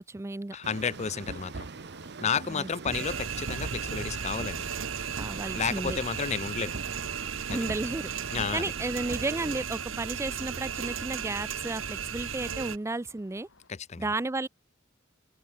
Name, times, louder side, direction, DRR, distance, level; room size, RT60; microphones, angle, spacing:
voice 1, 0.0-0.6 2.5-2.7 5.2-6.0 7.5-13.5 14.0-14.5, right 2 dB, 15° right, 0.4 m, -33 dB
sound 1, 0.5-13.7, left 2 dB, 90° left, 4.8 m, -59 dB
voice 2, 0.5-1.7 2.2-4.7 5.5-6.8 7.5-7.6 8.3-8.6 13.7-14.0, left 6 dB, 35° left, 0.5 m, -32 dB
sound 2, 0.6-9.6, right 3 dB, 60° right, 0.9 m, -42 dB
sound 3, 2.9-12.8, right 7 dB, 90° right, 1.3 m, -35 dB
open air
head